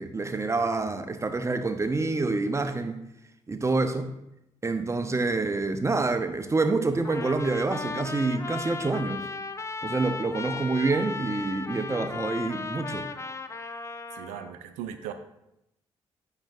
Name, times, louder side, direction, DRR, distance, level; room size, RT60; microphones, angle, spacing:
voice 1, 0.0-3.0 3.5-4.1 4.6-9.3 9.8-13.1, right 3 dB, 20° right, 9 dB, 0.6 m, -27 dB
Trumpet, 7.0-14.5, left 4 dB, 20° left, 0.5 m, -36 dB
voice 2, 14.1-15.1, right 10 dB, 70° right, 9 dB, 0.5 m, -38 dB
8.9 x 5.8 x 2.3 m, 0.86 s
figure-of-eight pair, 40°, 13 cm